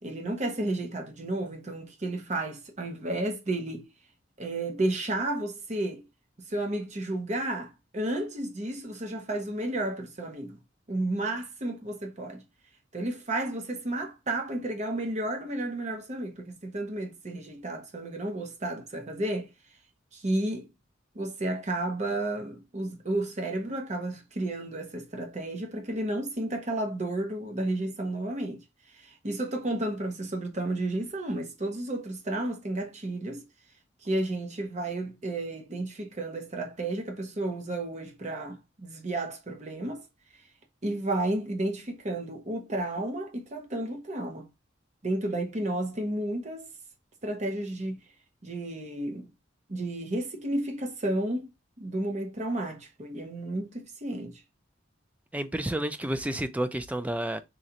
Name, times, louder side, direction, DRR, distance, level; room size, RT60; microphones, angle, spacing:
voice 1, 0.0-3.9 4.4-6.0 6.5-10.6 10.9-12.4 12.9-19.5 20.1-20.7 21.1-28.6 28.9-33.4 34.0-40.0 40.8-44.5 45.0-46.7 47.2-48.0 48.4-49.3 49.7-51.5 51.8-54.4, right 1 dB, 35° right, 0.8 m, -32 dB
voice 2, 55.3-57.4, right 1 dB, 5° right, 0.3 m, -30 dB
3.8 x 3.1 x 2.8 m
head